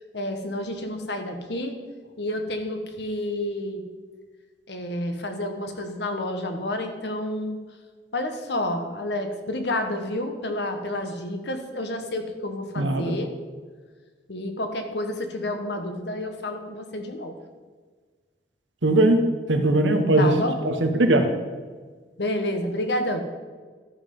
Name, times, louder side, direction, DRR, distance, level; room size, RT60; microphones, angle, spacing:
voice 1, 0.1-1.8 2.2-3.8 4.7-7.6 8.1-13.3 14.3-17.3 20.2-20.5 22.2-23.2, left 1 dB, 70° left, 5 dB, 1.2 m, -29 dB
voice 2, 12.8-13.2 18.8-19.2 19.5-20.3 20.6-21.3, right 2 dB, 85° right, 6 dB, 1.2 m, -19 dB
13.0 x 5.7 x 5.4 m, 1.5 s
head